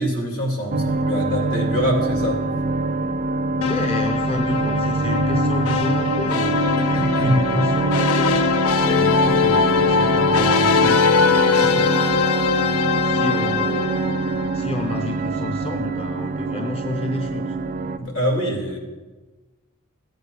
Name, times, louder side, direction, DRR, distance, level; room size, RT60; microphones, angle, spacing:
voice 1, 0.0-2.4 6.8-7.5 18.0-18.8, equal, 70° left, 0 dB, 2.9 m, -24 dB
sound 1, 0.7-18.0, right 3 dB, 40° right, 0.4 m, -24 dB
sound 2, 3.6-14.8, left 6 dB, 90° left, 0.5 m, -21 dB
voice 2, 3.6-8.4 8.8-12.2 12.9-14.0 14.5-17.6, left 2 dB, 25° left, 5 dB, 0.5 m, -31 dB
15.0 x 8.0 x 4.9 m, 1.3 s
head